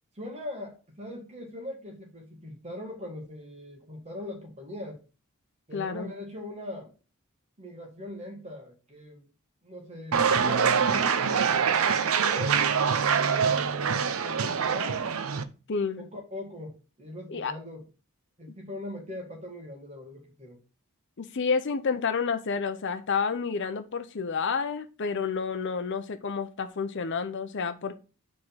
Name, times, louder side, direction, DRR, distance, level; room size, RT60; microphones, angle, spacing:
voice 1, 0.1-5.0 5.7-6.9 7.6-9.2 9.6-12.7 13.9-15.2 16.0-17.8 18.4-20.6, left 1 dB, 30° right, 1.6 m, -40 dB
voice 2, 5.7-6.1 15.7-16.1 17.3-17.5 21.2-27.9, left 5 dB, 55° left, 0.6 m, -30 dB
sound 1, 10.1-15.4, right 6 dB, 70° right, 0.6 m, -24 dB
4.9 x 3.7 x 5.6 m
head